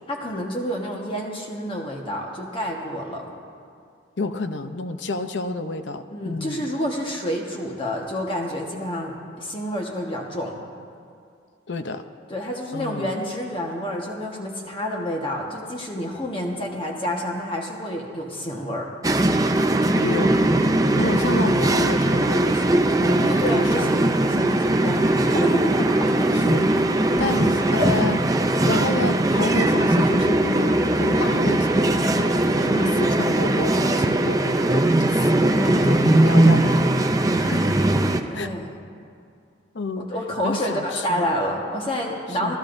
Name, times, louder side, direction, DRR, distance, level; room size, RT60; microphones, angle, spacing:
voice 1, 0.1-3.3 6.1-10.6 12.3-18.9 20.9-21.2 23.2-26.1 27.1-27.5 32.6-32.9 35.5-35.9 38.3-38.7 40.1-42.6, equal, 25° left, -1 dB, 1.4 m, -28 dB
voice 2, 4.2-6.7 11.7-12.0 12.7-13.2 20.0-20.6 21.0-22.7 23.0-24.1 26.3-27.4 27.7-28.2 28.6-34.9 35.1-35.3 35.6-37.8 38.3-38.5 39.7-40.1 40.4-41.3 42.4-42.6, left 3 dB, 70° left, 8 dB, 0.7 m, -30 dB
sound 1, 19.0-38.2, right 1 dB, 20° right, 0.5 m, -20 dB
28.5 x 13.5 x 2.6 m, 2.4 s
head